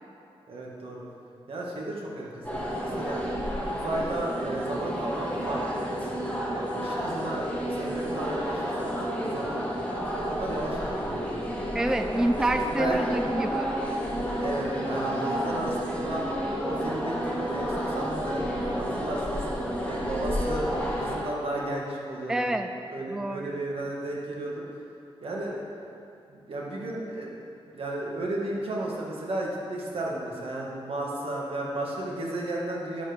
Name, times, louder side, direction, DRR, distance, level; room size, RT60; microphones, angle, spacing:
voice 1, 0.5-1.0 1.5-3.2 3.7-9.6 10.1-11.7 12.2-13.1 14.4-16.2 16.6-19.4 19.8-22.5 22.9-24.6 25.2-25.6 26.3-27.4 27.7-33.0, right 1 dB, 65° right, -3 dB, 2.1 m, -34 dB
sound 1, 2.4-21.2, equal, 15° left, 1.7 m, -31 dB
voice 2, 11.7-13.7 22.3-22.7 23.1-23.6, right 1 dB, 5° right, 7 dB, 0.3 m, -27 dB
10.5 x 7.6 x 5.3 m, 2.6 s
wide cardioid pair, 100°, 10 cm